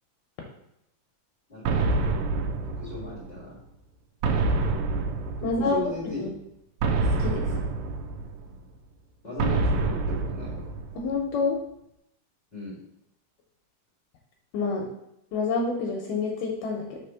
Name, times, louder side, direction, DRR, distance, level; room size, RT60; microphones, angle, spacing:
voice 1, 1.5-2.1 2.8-3.6 5.4-6.2 9.2-10.7 12.5-12.8, left 2 dB, 25° left, -9 dB, 1.5 m, -37 dB
sound 1, 1.7-3.4 4.2-5.9 6.8-8.6 9.4-11.2, right 3 dB, 80° right, 2.2 m, -27 dB
voice 2, 5.4-5.8 6.2-6.3 7.2-7.5 11.0-11.6 14.5-14.9 15.3-17.0, left 4 dB, 75° left, 0 dB, 2.2 m, -27 dB
4.9 x 4.2 x 5.6 m, 0.82 s
omnidirectional pair, 4.0 m